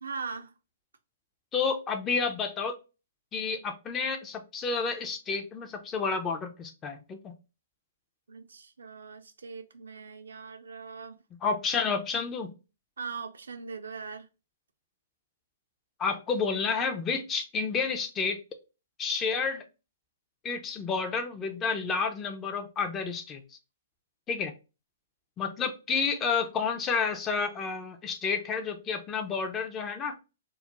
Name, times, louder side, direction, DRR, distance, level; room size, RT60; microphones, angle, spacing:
voice 1, 0.0-0.5 8.3-11.2 13.0-14.3, right 5 dB, 85° right, 0.4 m, -40 dB
voice 2, 1.5-2.8 3.3-7.4 11.4-12.5 16.0-18.4 19.0-19.6 20.4-23.4 24.3-24.5 25.4-30.2, left 5 dB, 20° left, 0.4 m, -30 dB
2.3 x 2.0 x 2.8 m
hypercardioid pair, 130°, 0 cm